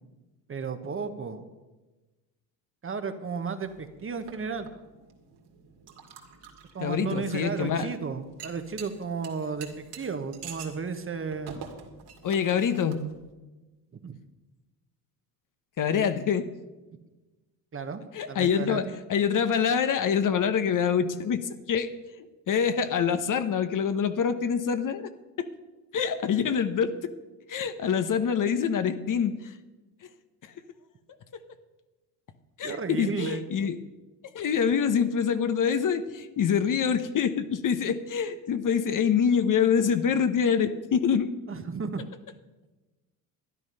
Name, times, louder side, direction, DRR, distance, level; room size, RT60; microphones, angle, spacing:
voice 1, 0.5-1.4 2.8-4.7 6.7-9.7 10.0-11.6 13.9-14.2 17.7-18.0 18.3-18.9 32.6-33.4 41.5-42.0, right 5 dB, 30° right, 8 dB, 1.3 m, -33 dB
sound 1, 3.6-13.3, right 7 dB, 60° right, 2.4 m, -48 dB
voice 2, 6.8-7.9 12.2-13.0 15.8-16.5 18.1-21.9 22.2-25.1 25.4-25.5 25.9-27.1 27.5-29.5 30.4-30.5 32.6-33.8 34.3-41.3, left 7 dB, 45° left, 10 dB, 1.1 m, -25 dB
12.5 x 10.5 x 5.5 m, 1.2 s
supercardioid pair, 75°, 46 cm